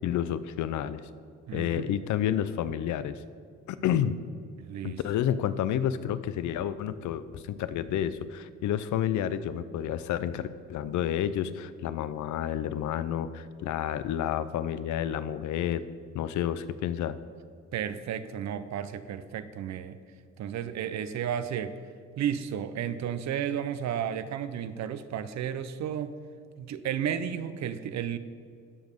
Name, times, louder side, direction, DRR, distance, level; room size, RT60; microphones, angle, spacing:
voice 1, 0.0-1.0 1.5-3.2 3.7-4.2 4.8-15.8 16.1-17.2, left 10 dB, 75° left, 14 dB, 0.5 m, -30 dB
voice 2, 1.5-1.9 4.6-5.0 17.7-20.0 20.4-21.8 22.2-26.2 26.6-28.2, right 9 dB, 65° right, 13 dB, 0.6 m, -33 dB
12.0 x 5.2 x 5.2 m, 2.2 s
cardioid pair, 90°, 30 cm